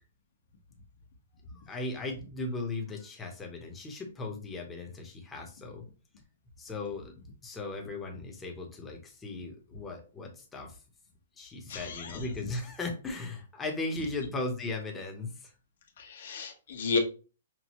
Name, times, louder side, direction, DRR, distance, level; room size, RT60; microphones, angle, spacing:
voice 1, 1.6-5.8 6.6-10.8 11.4-15.5, left 2 dB, 10° left, 1 dB, 1.0 m, -37 dB
voice 2, 11.7-12.2 16.0-17.0, left 4 dB, 65° left, 2 dB, 1.3 m, -32 dB
6.0 x 2.3 x 3.0 m, 0.36 s
hypercardioid pair, 155°, 0 cm